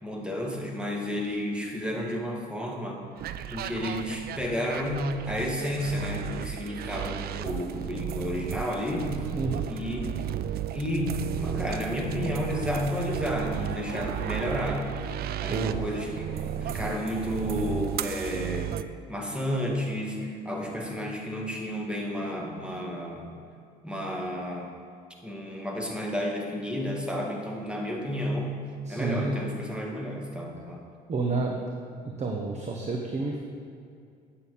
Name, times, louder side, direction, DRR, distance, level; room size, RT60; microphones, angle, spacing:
voice 1, 0.0-3.0 3.5-9.3 9.7-10.2 10.7-14.9 15.4-18.8 19.1-23.3 23.8-24.7 25.2-28.6 28.9-30.8, equal, 5° right, 0 dB, 1.8 m, -31 dB
sound 1, 3.2-18.8, right 10 dB, 50° right, 0.4 m, -34 dB
voice 2, 9.3-9.7 15.5-15.8 28.8-29.4 31.1-31.6 32.0-33.4, right 3 dB, 35° right, 1 dB, 1.1 m, -30 dB
9.1 x 6.8 x 5.3 m, 2.4 s
hypercardioid pair, 65°, 20 cm